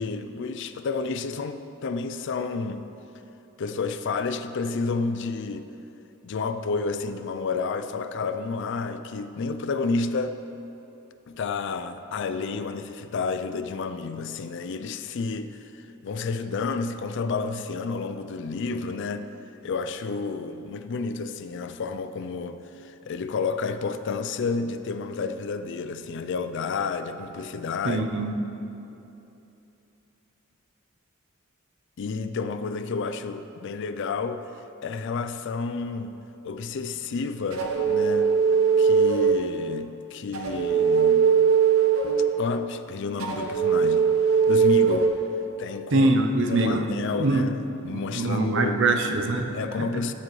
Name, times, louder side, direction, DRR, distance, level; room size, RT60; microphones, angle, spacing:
voice 1, 0.0-2.8 3.6-5.7 6.2-10.4 11.3-19.3 19.6-28.1 32.0-34.4 34.8-36.2 36.4-38.3 38.8-41.3 42.4-44.1 44.5-45.2 45.6-46.1 46.5-48.8 49.5-50.1, left 4 dB, 60° left, 10 dB, 0.4 m, -30 dB
voice 2, 27.8-28.3 45.9-46.9 47.2-47.5 47.9-50.0, right 2 dB, 60° right, 5 dB, 0.7 m, -23 dB
sound 1, 37.5-39.4 40.3-42.3 43.2-45.1, right 6 dB, 80° right, 1.0 m, -20 dB
13.0 x 7.5 x 3.2 m, 2.9 s
head